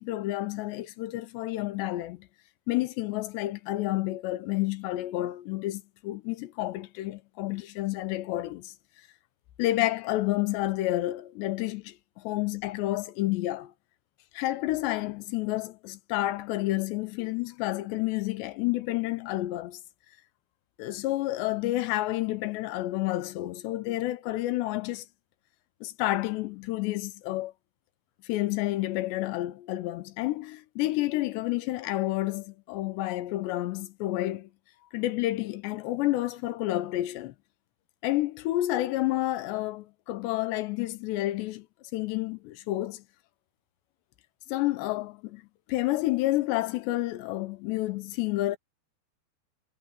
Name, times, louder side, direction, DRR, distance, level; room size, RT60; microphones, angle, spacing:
voice 1, 0.0-2.3 2.7-8.7 9.6-13.7 14.3-19.8 20.8-25.1 25.8-27.5 28.2-34.5 34.9-37.3 38.0-41.7 41.9-43.0 44.5-45.4 45.7-48.6, left 17 dB, 85° left, 3.2 m, -30 dB
omnidirectional pair, 4.9 m